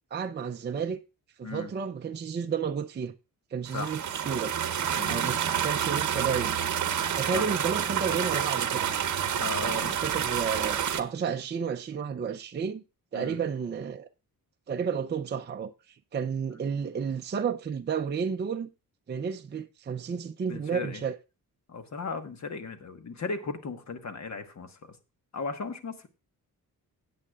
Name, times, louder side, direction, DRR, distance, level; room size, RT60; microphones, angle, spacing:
voice 1, 0.1-1.0 1.4-3.1 3.5-4.5 5.1-6.5 7.2-8.9 9.6-12.8 13.1-14.1 14.7-15.7 16.1-18.7 19.1-21.2, right 6 dB, 30° right, 0.5 m, -32 dB
sound 1, 3.7-11.0, right 9 dB, 55° right, 0.9 m, -29 dB
voice 2, 5.0-5.4 7.3-7.5 9.4-10.0 13.1-13.4 20.5-21.0 21.7-24.8 25.3-26.1, left 4 dB, 50° left, 1.3 m, -36 dB
16.5 x 8.6 x 2.4 m
cardioid pair, 105°, 36 cm